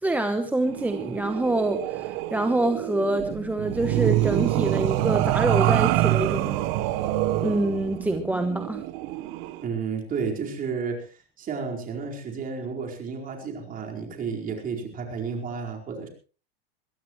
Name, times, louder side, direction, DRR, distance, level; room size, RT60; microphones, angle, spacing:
voice 1, 0.0-6.6 7.4-8.8, right 2 dB, 5° right, 7 dB, 1.0 m, -26 dB
sound 1, 0.7-9.6, right 15 dB, 50° right, 1.3 m, -26 dB
voice 2, 9.6-16.1, right 5 dB, 30° right, 1 dB, 4.6 m, -32 dB
22.5 x 16.5 x 3.2 m, 0.37 s
supercardioid pair, 135°, 29 cm